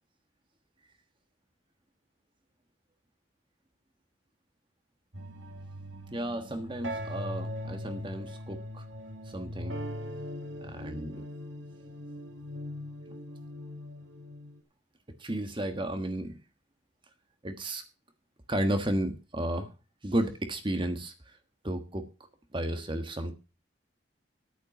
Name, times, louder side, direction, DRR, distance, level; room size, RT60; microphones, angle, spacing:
sound 1, 5.1-14.6, equal, 90° right, 2.5 m, -40 dB
voice 1, 6.1-8.8 9.3-9.8 10.6-11.2 15.2-16.4 17.4-17.8 18.5-19.7 20.0-21.3 21.6-22.1 22.5-23.3, right 1 dB, 25° right, 8 dB, 1.3 m, -33 dB
10.0 x 9.3 x 6.0 m, 0.32 s
head